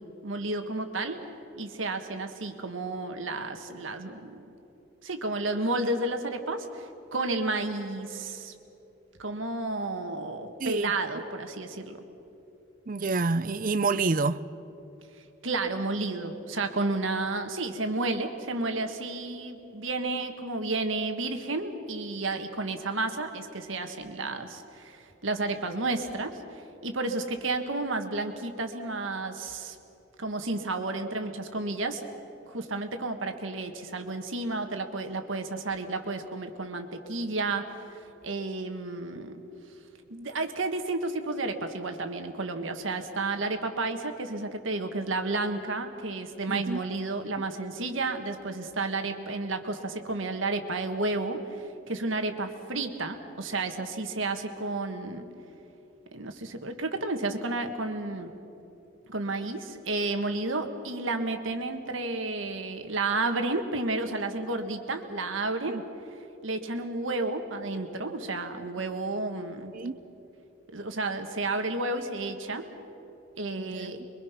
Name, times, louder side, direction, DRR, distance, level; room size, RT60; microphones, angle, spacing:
voice 1, 0.2-1.3 1.6-4.4 5.0-8.5 9.2-12.0 15.4-29.8 30.2-32.0 32.4-39.4 40.1-55.2 56.1-58.3 59.1-65.8 66.4-69.7 70.7-72.6 73.4-74.0, right 2 dB, 70° right, 1.6 m, -31 dB
voice 2, 10.6-10.9 12.9-14.4 46.5-46.8 47.4-47.5 65.7-65.8 69.7-70.0 73.6-73.9, right 3 dB, 40° right, 0.5 m, -28 dB
26.5 x 23.0 x 5.9 m
head